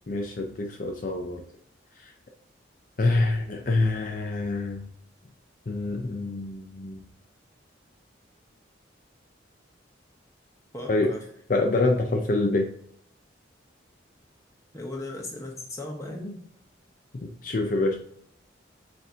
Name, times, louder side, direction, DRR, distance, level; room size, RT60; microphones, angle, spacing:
voice 1, 0.1-1.4 2.0-2.1 3.0-4.9 5.7-7.0 10.9-11.2 11.5-12.7 17.4-17.9, left 2 dB, 45° left, 2 dB, 0.5 m, -26 dB
voice 2, 10.7-11.2 14.7-16.4, left 1 dB, 15° left, 0 dB, 0.8 m, -36 dB
7.5 x 2.5 x 2.7 m, 0.68 s
head